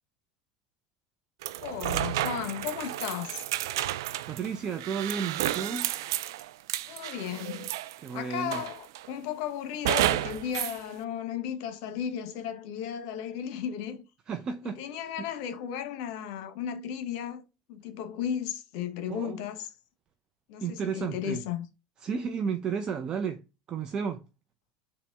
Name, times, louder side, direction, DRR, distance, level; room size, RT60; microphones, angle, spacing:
sound 1, 1.4-8.1 8.5-9.1 9.8-10.8, right 13 dB, 85° right, 0.3 m, -31 dB
voice 1, 1.6-3.4 6.9-7.7 8.1-14.0 14.7-17.4 17.7-19.7 20.5-21.6, left 9 dB, 70° left, 0.9 m, -35 dB
voice 2, 4.3-5.9 8.0-8.6 14.3-14.8 15.2-15.3 19.1-19.4 20.6-21.4 22.0-23.4 23.7-24.2, right 6 dB, 40° right, 0.5 m, -32 dB
4.2 x 2.7 x 3.5 m
supercardioid pair, 115°, 2 cm